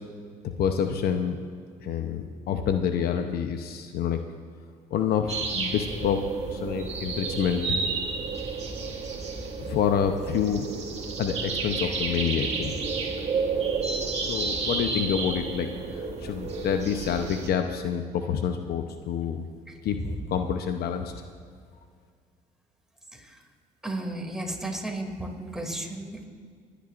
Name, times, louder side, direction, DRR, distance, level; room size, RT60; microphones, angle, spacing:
voice 1, 0.6-1.5 1.8-4.2 4.9-7.8 9.6-10.7 11.2-12.7 14.3-15.7 16.2-19.4 19.8-20.0 20.3-21.1, left 8 dB, 65° left, 6 dB, 0.8 m, -27 dB
sound 1, 5.3-17.5, right 4 dB, 40° right, 2.0 m, -31 dB
voice 2, 19.7-20.3 21.0-21.2 23.1-23.4 23.8-26.2, right 1 dB, 5° right, 1 dB, 2.6 m, -34 dB
28.5 x 10.0 x 2.6 m, 2.1 s
supercardioid pair, 75°, 17 cm